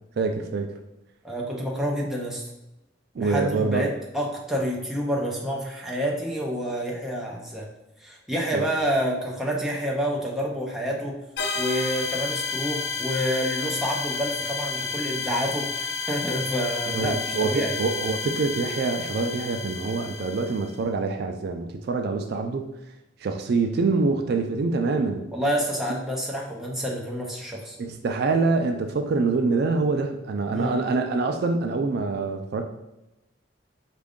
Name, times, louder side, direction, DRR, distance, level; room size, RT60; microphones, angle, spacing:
voice 1, 0.2-0.8 3.2-3.8 8.5-8.7 16.9-22.7 23.2-25.3 27.8-32.6, right 3 dB, 60° right, 5 dB, 0.4 m, -25 dB
voice 2, 1.2-2.4 3.2-7.7 8.0-11.2 11.6-17.7 25.3-27.8 30.5-30.8, equal, ahead, -2 dB, 0.6 m, -28 dB
sound 1, 11.4-20.7, left 4 dB, 65° left, 0.6 m, -31 dB
4.5 x 2.5 x 3.5 m, 0.94 s
head